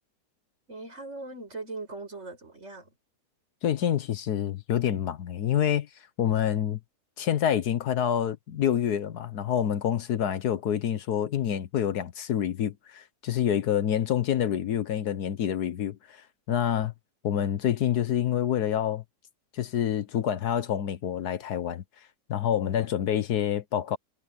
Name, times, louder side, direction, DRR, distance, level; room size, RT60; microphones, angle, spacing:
voice 1, 0.7-2.9, right 3 dB, 45° right, 6.6 m, -40 dB
voice 2, 3.6-6.8 7.2-16.9 17.2-19.0 19.5-21.8 22.3-24.0, left 9 dB, 75° left, 1.5 m, -27 dB
omnidirectional pair, 1.7 m